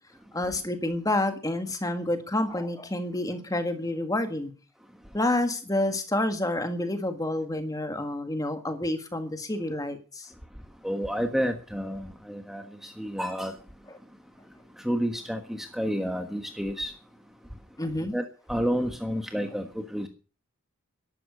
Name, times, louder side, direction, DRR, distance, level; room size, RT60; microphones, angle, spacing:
voice 1, 0.3-4.5 5.1-10.3 17.8-18.1, left 1 dB, 15° left, 1.7 m, -29 dB
voice 2, 10.8-13.5 14.8-16.9 18.1-20.1, equal, ahead, 1.4 m, -30 dB
13.5 x 12.0 x 6.8 m
head